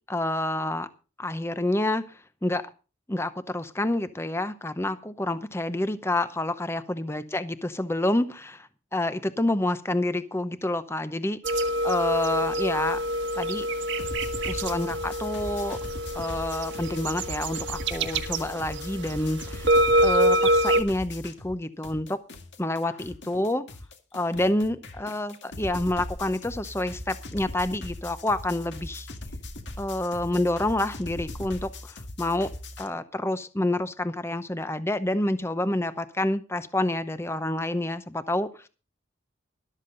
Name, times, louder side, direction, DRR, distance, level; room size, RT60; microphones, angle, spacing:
voice 1, 0.1-0.9 1.2-2.7 3.1-11.4 11.8-13.0 13.4-13.7 14.5-15.8 16.1-19.7 20.0-22.2 22.6-23.7 24.1-29.1 29.8-32.5 32.8-38.7, left 1 dB, 15° left, 12 dB, 0.7 m, -28 dB
sound 1, 11.4-20.8, right 1 dB, 65° right, 1.4 m, -26 dB
sound 2, 14.0-21.6 21.8-32.9, left 1 dB, 60° left, 2.1 m, -40 dB
13.0 x 12.5 x 3.9 m, 0.33 s
head